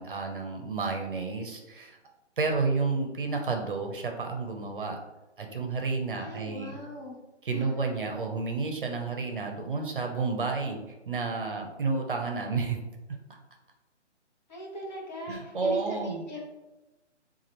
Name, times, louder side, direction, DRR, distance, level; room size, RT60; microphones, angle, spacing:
voice 1, 0.0-2.0 2.4-5.0 5.4-6.8 7.4-10.8 11.1-12.8 15.3-16.2, right 4 dB, 45° right, 3 dB, 0.7 m, -31 dB
voice 2, 6.1-7.2 7.5-7.9 14.5-16.5, equal, 40° left, -2 dB, 1.2 m, -39 dB
7.3 x 2.5 x 2.9 m, 1.0 s
hypercardioid pair, 170°, 35 cm